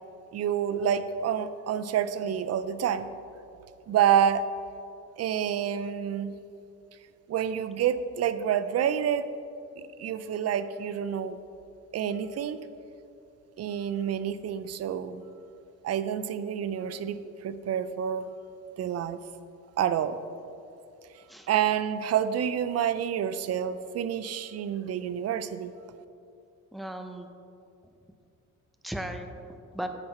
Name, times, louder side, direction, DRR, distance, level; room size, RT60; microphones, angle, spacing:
voice 1, 0.3-3.1 3.9-4.4 5.2-6.3 7.3-9.3 10.0-11.4 11.9-12.6 13.6-15.2 15.8-18.3 18.8-19.2 19.8-20.2 21.5-25.7, right 9 dB, 55° right, 12 dB, 0.5 m, -28 dB
voice 2, 26.7-27.3 28.8-29.9, right 1 dB, ahead, 6 dB, 0.6 m, -37 dB
8.6 x 5.8 x 4.3 m, 2.6 s
cardioid pair, 90°, 30 cm